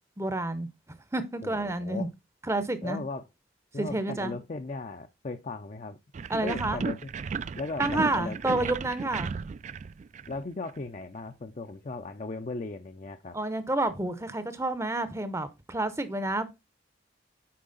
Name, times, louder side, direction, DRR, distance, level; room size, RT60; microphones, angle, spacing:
voice 1, 0.2-0.7 1.1-2.1 2.5-3.0 3.8-4.4 6.3-6.8 7.8-9.3 13.3-16.5, right 2 dB, 15° right, 0.7 m, -29 dB
voice 2, 1.4-2.1 2.8-3.3 3.7-6.0 6.4-7.1 7.5-8.7 10.3-13.4, left 3 dB, 40° left, 0.5 m, -37 dB
sound 1, 6.1-10.8, right 5 dB, 40° right, 0.3 m, -35 dB
8.5 x 4.9 x 3.9 m
head